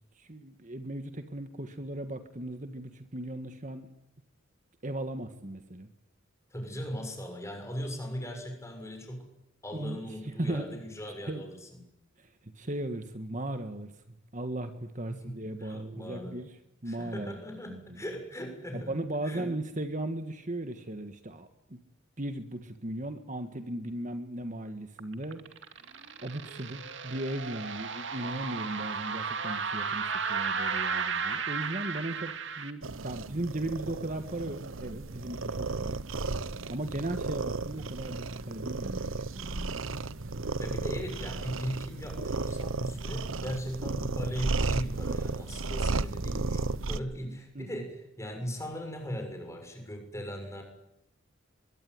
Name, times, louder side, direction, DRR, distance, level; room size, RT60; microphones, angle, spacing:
voice 1, 0.1-3.9 4.8-5.9 9.7-10.7 11.3-11.4 12.2-16.6 16.8-17.4 17.7-18.0 18.7-21.8 22.2-36.0 36.7-39.9 47.5-47.8, right 1 dB, 40° right, 8 dB, 1.6 m, -37 dB
voice 2, 6.5-9.3 9.6-11.5 15.1-15.3 15.6-16.4 16.9-18.9 19.2-19.5 40.6-50.6, equal, 15° left, 3 dB, 6.6 m, -38 dB
sound 1, 25.0-32.7, right 5 dB, 65° right, 2.4 m, -34 dB
sound 2, 32.8-47.0, right 3 dB, 80° right, 1.0 m, -34 dB
23.0 x 22.5 x 9.6 m, 0.85 s
head